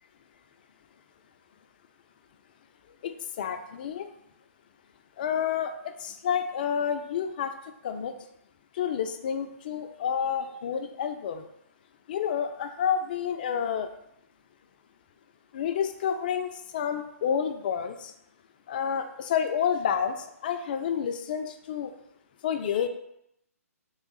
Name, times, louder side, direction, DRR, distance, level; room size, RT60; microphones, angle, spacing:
voice 1, 3.0-4.1 5.2-5.7 6.0-7.5 7.8-8.1 8.7-11.5 12.1-13.9 15.5-18.1 18.7-21.9 22.4-22.9, left 8 dB, 35° left, 8 dB, 0.3 m, -29 dB
3.5 x 3.4 x 3.9 m, 0.79 s
figure-of-eight pair, 130°, 8 cm